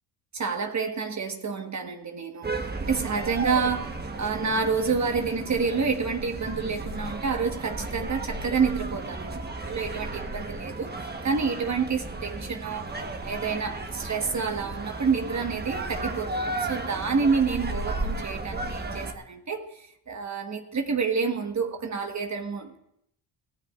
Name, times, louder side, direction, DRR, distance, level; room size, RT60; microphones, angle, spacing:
voice 1, 0.3-10.9 11.2-12.9 13.2-22.8, right 5 dB, 35° right, 1.4 m, -28 dB
sound 1, 2.4-19.1, right 2 dB, 20° right, 1.2 m, -34 dB
22.0 x 15.0 x 2.5 m
cardioid pair, 85°, 46 cm